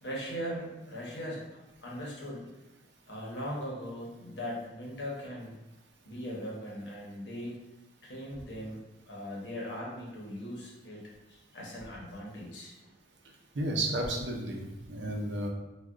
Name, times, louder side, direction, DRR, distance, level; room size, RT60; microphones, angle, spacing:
voice 1, 0.0-2.5 3.1-5.6 6.0-7.6 8.0-8.8 9.1-12.7, equal, 75° left, -3 dB, 0.9 m, -39 dB
voice 2, 13.5-15.5, right 1 dB, 80° right, 1 dB, 0.5 m, -32 dB
2.4 x 2.3 x 3.5 m, 0.98 s
head